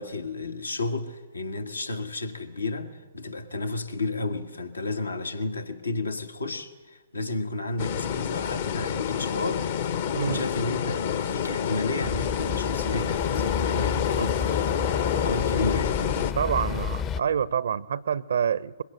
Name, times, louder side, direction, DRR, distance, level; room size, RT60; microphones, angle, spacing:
voice 1, 0.0-9.9 10.1-16.0, left 2 dB, 75° left, 1.8 m, -32 dB
sound 1, 7.8-16.3, left 8 dB, 50° left, 1.2 m, -28 dB
sound 2, 12.0-17.2, left 6 dB, 20° left, 0.7 m, -31 dB
voice 2, 16.4-18.8, right 7 dB, 60° right, 0.6 m, -27 dB
24.0 x 22.5 x 7.7 m
figure-of-eight pair, 120°, 0 cm